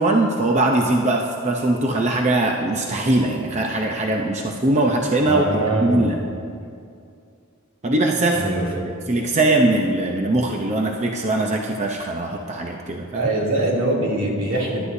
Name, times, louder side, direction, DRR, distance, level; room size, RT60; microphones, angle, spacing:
voice 1, 0.0-6.2 7.8-8.4 9.1-13.3, right 2 dB, 35° right, 1 dB, 0.8 m, -21 dB
voice 2, 5.3-6.2 8.3-8.7 13.1-14.8, right 2 dB, 75° right, -4 dB, 2.9 m, -23 dB
23.5 x 11.5 x 2.8 m, 2.4 s
head